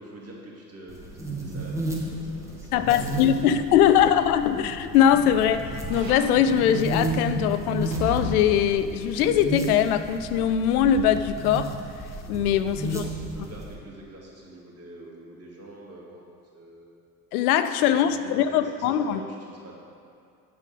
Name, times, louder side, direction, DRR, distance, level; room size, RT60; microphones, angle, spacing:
voice 1, 0.0-4.1 12.8-17.0 17.8-19.7, right 2 dB, 30° right, 2.3 m, -44 dB
sound 1, 0.9-13.7, right 1 dB, 5° right, 1.5 m, -33 dB
voice 2, 2.7-11.8 12.3-13.0 17.3-19.2, left 9 dB, 60° left, 0.6 m, -21 dB
sound 2, 4.2-10.5 11.0-11.1, right 3 dB, 80° right, 0.9 m, -39 dB
9.2 x 5.6 x 6.2 m
figure-of-eight pair, 60°, 50 cm